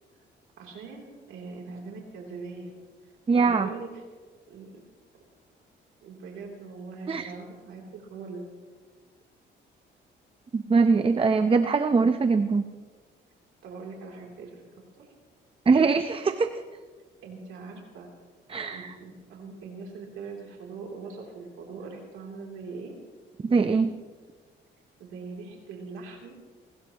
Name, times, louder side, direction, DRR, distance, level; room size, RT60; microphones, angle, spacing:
voice 1, 0.6-2.7 3.0-4.0 4.5-4.7 6.0-8.4 13.6-14.5 15.0-15.1 17.2-18.1 18.7-22.9 25.0-26.3, right 4 dB, 85° right, -1 dB, 3.1 m, -41 dB
voice 2, 3.3-3.7 7.1-7.3 10.5-12.6 15.7-16.6 18.5-18.9 23.4-23.9, right 4 dB, 25° right, 9 dB, 0.8 m, -22 dB
21.5 x 19.5 x 3.0 m, 1.4 s
cardioid pair, 90°, 20 cm